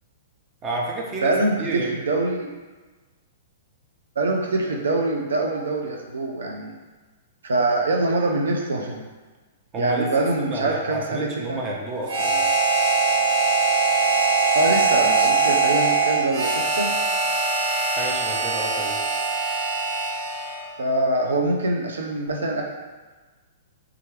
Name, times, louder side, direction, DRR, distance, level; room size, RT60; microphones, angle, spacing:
voice 1, 0.6-1.9 9.7-12.5 18.0-19.0, right 2 dB, 25° right, -2 dB, 0.8 m, -30 dB
voice 2, 1.2-2.5 4.2-6.7 7.4-9.0 9.8-11.6 14.5-16.9 20.8-22.6, right 2 dB, 80° right, 1 dB, 0.5 m, -24 dB
Harmonica, 12.1-20.7, right 4 dB, 60° right, 0.9 m, -22 dB
3.4 x 3.3 x 3.2 m, 1.3 s
hypercardioid pair, 120°, 0 cm